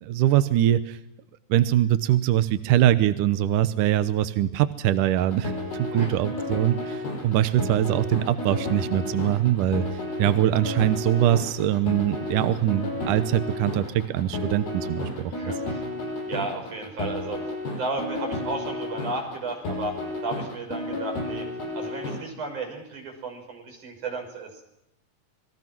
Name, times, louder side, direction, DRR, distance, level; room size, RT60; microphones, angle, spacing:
voice 1, 0.0-1.0 1.5-5.5 5.8-9.8 10.2-15.5, right 12 dB, 75° right, 12 dB, 2.0 m, -23 dB
sound 1, 5.1-22.2, left 2 dB, 70° left, 8.4 m, -32 dB
voice 2, 15.3-15.8 16.3-17.4 17.7-19.9 20.2-21.5 21.7-24.6, right 3 dB, 45° right, 3 dB, 7.6 m, -33 dB
28.0 x 22.0 x 6.1 m, 0.81 s
omnidirectional pair, 4.9 m